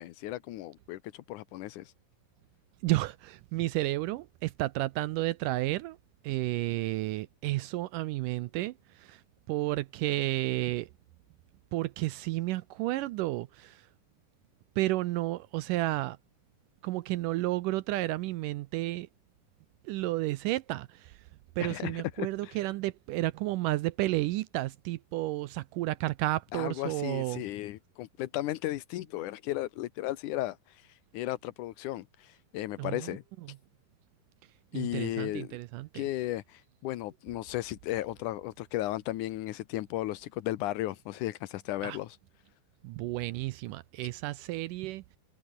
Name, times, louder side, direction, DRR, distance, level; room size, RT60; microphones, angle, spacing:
voice 1, 0.0-1.9 21.6-22.6 26.5-33.2 34.7-35.6 35.9-42.2, left 15 dB, 70° left, 2.2 m, -35 dB
voice 2, 2.8-6.0 6.2-8.7 9.0-9.2 9.5-10.9 11.7-13.8 14.8-16.2 16.8-19.1 19.9-20.9 21.6-27.4 32.8-33.1 34.7-36.0 41.8-42.0 42.8-45.0, right 17 dB, 80° right, 2.0 m, -31 dB
omnidirectional pair, 4.1 m